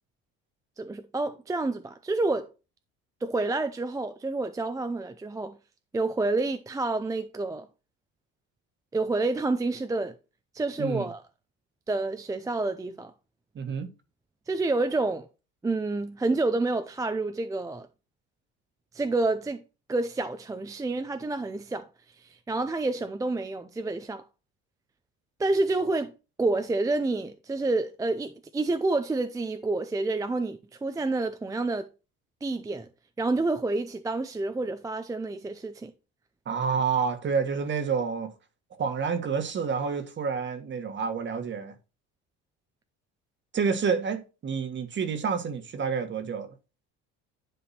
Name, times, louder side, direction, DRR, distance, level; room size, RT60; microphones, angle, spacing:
voice 1, 0.8-2.5 3.2-5.6 5.9-7.7 8.9-10.1 10.5-11.2 11.9-13.1 14.5-15.3 15.6-17.9 18.9-19.6 19.9-21.9 22.2-24.2 25.4-26.1 26.4-31.9 32.4-32.9 33.2-35.9, right 2 dB, 10° right, 0.5 m, -28 dB
voice 2, 10.8-11.1 13.5-13.9 36.4-38.3 38.8-41.7 43.5-46.5, right 6 dB, 40° right, 1.4 m, -29 dB
10.5 x 3.5 x 4.2 m
cardioid pair, 110°, 29 cm